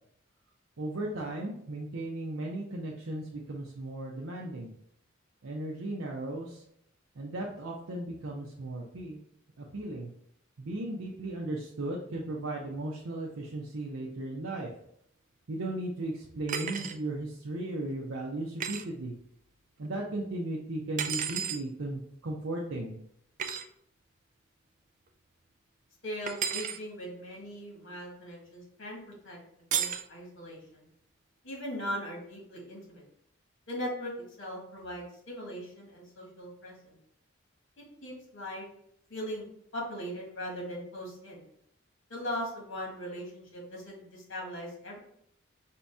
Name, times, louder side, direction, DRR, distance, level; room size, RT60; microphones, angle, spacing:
voice 1, 0.8-4.7 5.4-6.6 7.2-9.2 9.6-10.1 10.6-14.7 15.5-19.1 19.8-22.9, right 2 dB, 85° right, -3 dB, 0.6 m, -36 dB
sound 1, 16.5-17.0 18.6-18.8 21.0-21.6 23.4-23.6 26.3-26.8 29.7-30.1, right 8 dB, 40° right, 0.3 m, -32 dB
voice 2, 26.0-29.4 29.7-30.9 31.4-33.0 33.7-34.1 34.4-37.0 37.8-38.6 39.1-39.4 39.7-41.4 42.1-45.0, equal, 65° left, -2 dB, 1.7 m, -39 dB
5.1 x 2.8 x 3.5 m, 0.71 s
head